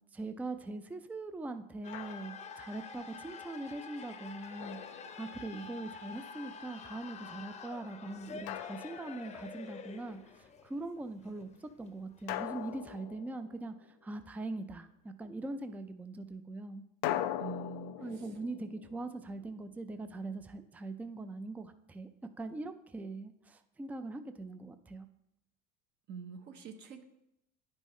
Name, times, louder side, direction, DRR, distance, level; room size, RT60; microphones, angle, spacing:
voice 1, 0.1-4.8 5.1-16.8 18.0-22.1 22.4-25.1, right 2 dB, 5° right, 9 dB, 0.4 m, -42 dB
sound 1, 1.8-12.7, left 5 dB, 30° left, 0.7 m, -48 dB
Drum, 1.9-2.6 4.6-5.7 8.5-9.6 12.3-13.9 17.0-20.0, left 13 dB, 70° left, 0.5 m, -41 dB
voice 2, 17.4-18.3 26.1-27.0, right 6 dB, 55° right, 4 dB, 1.0 m, -45 dB
10.0 x 5.4 x 3.1 m, 0.81 s
supercardioid pair, 110°, 21 cm